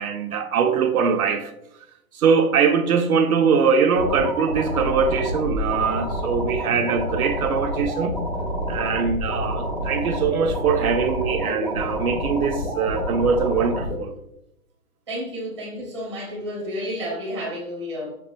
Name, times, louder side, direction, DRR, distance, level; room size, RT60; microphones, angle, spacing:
voice 1, 0.0-1.5 2.1-8.2 8.7-14.1, right 6 dB, 70° right, 0.5 m, -22 dB
sound 1, 4.0-14.0, equal, 35° left, 0.4 m, -28 dB
voice 2, 15.1-18.2, equal, 20° right, 0.7 m, -31 dB
5.8 x 2.2 x 2.5 m
hypercardioid pair, 175°, 45 cm